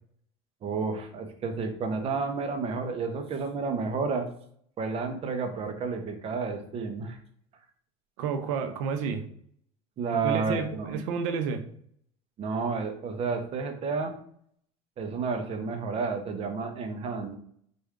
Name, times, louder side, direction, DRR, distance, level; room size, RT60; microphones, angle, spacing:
voice 1, 0.6-4.3 4.8-7.2 10.0-11.0 12.4-14.1 15.0-17.4, right 4 dB, 35° right, 6 dB, 0.8 m, -31 dB
voice 2, 8.2-9.2 10.2-11.6, right 6 dB, 75° right, 7 dB, 0.7 m, -30 dB
4.5 x 2.6 x 3.6 m, 0.64 s
supercardioid pair, 120°, 16 cm